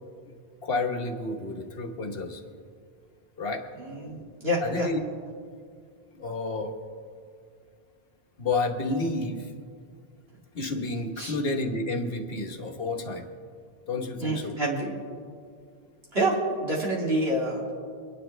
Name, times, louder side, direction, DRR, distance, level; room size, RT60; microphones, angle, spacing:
voice 1, 0.6-2.4 3.4-3.6 4.6-5.1 6.1-6.7 8.4-9.5 10.5-13.3 13.9-14.6, left 2 dB, 65° left, 4 dB, 1.4 m, -30 dB
voice 2, 3.8-4.9 11.2-11.3 14.2-14.9 16.1-17.7, right 1 dB, 75° right, -4 dB, 3.0 m, -27 dB
24.5 x 10.0 x 3.3 m, 2.2 s
omnidirectional pair, 1.1 m